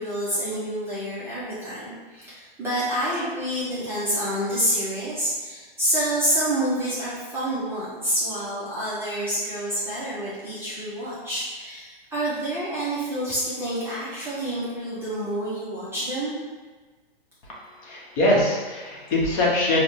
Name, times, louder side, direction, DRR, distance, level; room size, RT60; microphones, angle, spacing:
voice 1, 0.0-16.3, right 1 dB, 10° right, -11 dB, 0.6 m, -28 dB
voice 2, 17.8-19.8, left 1 dB, 35° left, -4 dB, 0.9 m, -22 dB
4.7 x 2.2 x 2.7 m, 1.3 s
hypercardioid pair, 135°, 29 cm